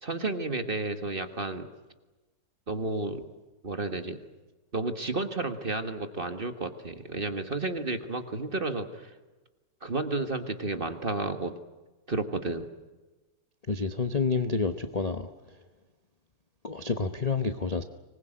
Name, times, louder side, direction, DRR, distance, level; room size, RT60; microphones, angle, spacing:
voice 1, 0.0-1.7 2.7-3.2 3.6-4.2 4.7-9.1 9.8-11.5 12.1-12.7, right 2 dB, 30° right, 8 dB, 1.6 m, -32 dB
voice 2, 13.7-15.3 16.6-17.8, left 4 dB, 30° left, 8 dB, 0.8 m, -29 dB
25.0 x 20.5 x 9.0 m, 1.2 s
omnidirectional pair, 2.0 m